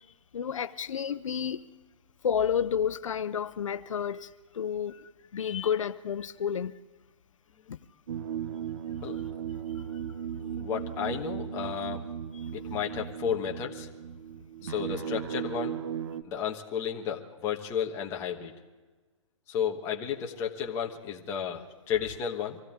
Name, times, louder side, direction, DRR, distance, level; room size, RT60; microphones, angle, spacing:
voice 1, 0.3-1.6 2.2-4.3 4.5-6.7 7.7-7.8 12.4-12.5, left 8 dB, 80° left, 0.7 m, -30 dB
sound 1, 8.1-16.2, right 8 dB, 55° right, 0.8 m, -36 dB
voice 2, 10.6-12.1 12.5-13.9 14.6-15.8 16.2-18.5 19.5-22.6, left 8 dB, 15° left, 1.3 m, -33 dB
24.5 x 16.0 x 3.6 m
hypercardioid pair, 165°, 16 cm